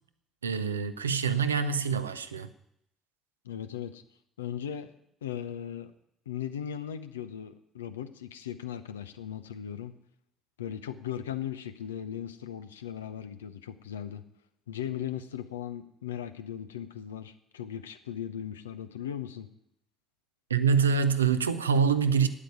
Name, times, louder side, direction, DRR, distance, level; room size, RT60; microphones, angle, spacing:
voice 1, 0.4-2.5 20.5-22.3, right 6 dB, 90° right, 0.6 m, -25 dB
voice 2, 3.4-4.0 4.4-4.9 5.2-5.9 6.3-9.9 10.6-14.2 14.7-19.5, left 9 dB, 85° left, 0.7 m, -38 dB
9.3 x 8.5 x 9.5 m
figure-of-eight pair, 50°, 0 cm